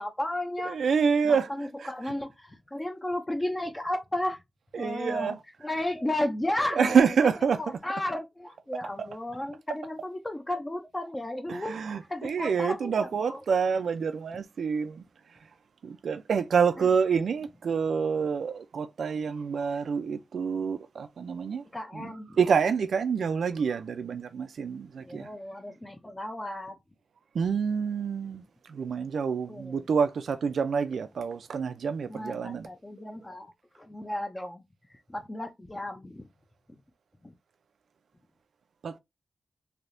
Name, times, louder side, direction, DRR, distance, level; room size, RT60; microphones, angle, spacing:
voice 1, 0.0-0.8 1.2-4.4 4.8-5.4 5.6-7.0 7.6-11.7 12.1-13.4 21.7-22.4 25.0-26.8 29.5-29.8 32.1-34.6 35.1-36.3, left 1 dB, 15° left, 0.4 m, -33 dB
voice 2, 0.6-1.5 1.8-2.1 4.7-5.8 6.7-7.8 8.7-9.2 9.7-9.8 11.5-15.0 15.8-21.6 21.9-25.3 27.3-28.4 28.7-32.7 38.8-39.0, right 6 dB, 90° right, 0.3 m, -27 dB
3.3 x 2.7 x 2.5 m
wide cardioid pair, 120°, 0 cm